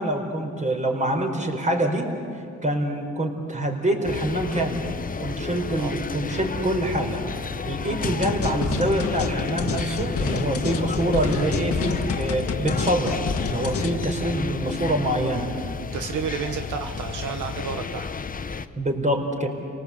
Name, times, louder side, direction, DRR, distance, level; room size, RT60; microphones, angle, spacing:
voice 1, 0.0-2.1 2.6-4.9 5.2-7.2 7.6-13.2 13.5-15.5 18.8-19.5, right 1 dB, 25° right, 2 dB, 4.3 m, -25 dB
sound 1, 4.0-18.7, left 5 dB, 30° left, 0.9 m, -32 dB
sound 2, 8.0-14.0, left 4 dB, 50° left, 1.7 m, -28 dB
voice 2, 15.8-18.1, right 6 dB, 85° right, 7 dB, 1.3 m, -31 dB
29.0 x 18.5 x 8.3 m, 2.3 s
cardioid pair, 90°, 30 cm